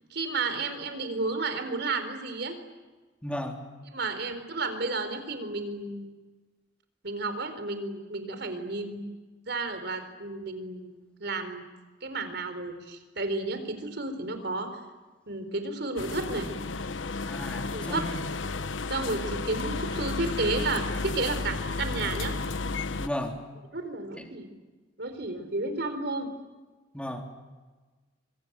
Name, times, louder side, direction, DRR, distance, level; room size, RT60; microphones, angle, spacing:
voice 1, 0.1-2.6 3.9-6.1 7.0-9.0 9.5-11.6 12.0-14.7 15.3-16.5 17.7-18.1 18.9-22.3 23.7-24.5 25.0-26.3, right 3 dB, 60° right, 9 dB, 4.1 m, -32 dB
voice 2, 3.2-3.6 17.3-18.2 23.0-23.4 26.9-27.2, left 1 dB, 5° left, 2 dB, 3.7 m, -34 dB
sound 1, 16.0-23.1, left 3 dB, 85° left, 1.0 m, -33 dB
25.5 x 24.0 x 9.3 m, 1.3 s
head